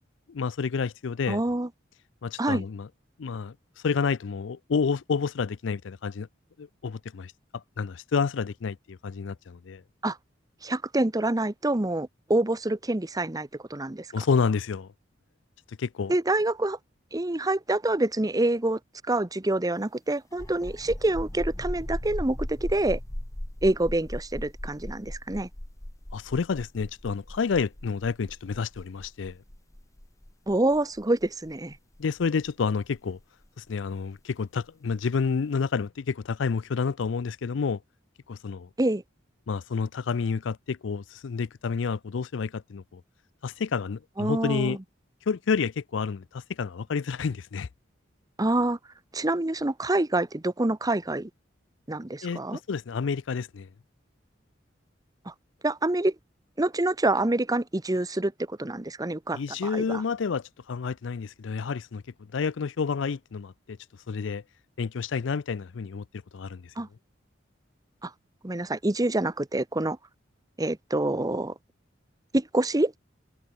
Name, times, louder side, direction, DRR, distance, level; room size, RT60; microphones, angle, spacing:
voice 1, 0.3-1.4 2.2-2.9 3.2-3.5 3.8-6.3 6.6-9.8 14.1-14.9 15.8-16.1 26.1-29.4 32.0-33.2 33.6-37.8 38.3-38.7 39.5-43.0 43.4-44.8 45.3-47.7 52.2-52.4 52.7-53.7 59.3-62.0 62.3-63.8 64.1-64.4 64.8-66.0 66.3-66.7, left 5 dB, 75° left, 0.5 m, -29 dB
voice 2, 1.3-1.7 2.4-2.6 10.0-10.2 10.6-14.1 16.1-16.8 17.1-18.8 19.1-23.0 23.6-25.5 30.5-31.8 38.8-39.0 44.2-44.8 48.4-48.8 49.1-51.3 51.9-52.6 55.3-55.4 55.6-56.1 56.6-60.0 66.8-66.9 68.0-68.1 68.4-70.0 70.6-71.5 72.3-72.9, right 2 dB, 20° right, 0.9 m, -26 dB
sound 1, 20.3-33.7, left 1 dB, 15° left, 1.1 m, -38 dB
head